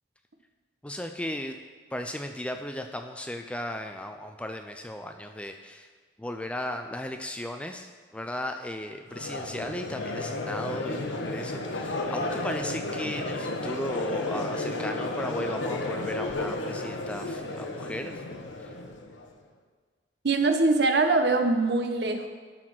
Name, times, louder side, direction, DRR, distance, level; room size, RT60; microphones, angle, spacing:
voice 1, 0.8-1.6 1.9-5.9 6.2-18.2 18.6-18.7, left 1 dB, 5° left, 5 dB, 0.3 m, -36 dB
Crowd, 9.1-19.3, left 2 dB, 80° left, 0.9 m, -33 dB
voice 2, 20.2-22.3, right 3 dB, 60° right, 6 dB, 0.8 m, -23 dB
12.0 x 4.1 x 6.1 m, 1.5 s
head